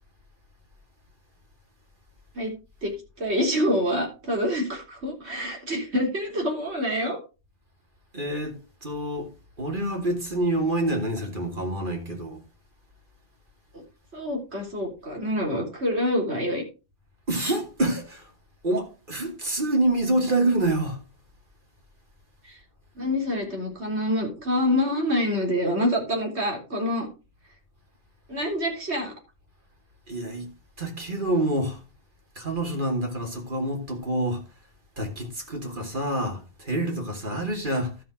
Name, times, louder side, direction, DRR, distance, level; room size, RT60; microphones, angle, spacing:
voice 1, 3.2-7.2 14.1-16.6 22.5-22.6 23.0-27.1 28.3-29.1, left 1 dB, 80° right, 4.0 m, -26 dB
voice 2, 8.1-9.3 9.6-12.4 17.3-18.3 18.6-21.0 30.1-30.5 30.8-31.8 32.4-34.4 35.0-37.9, right 1 dB, 50° right, 2.8 m, -27 dB
12.5 x 6.1 x 5.0 m
omnidirectional pair, 1.1 m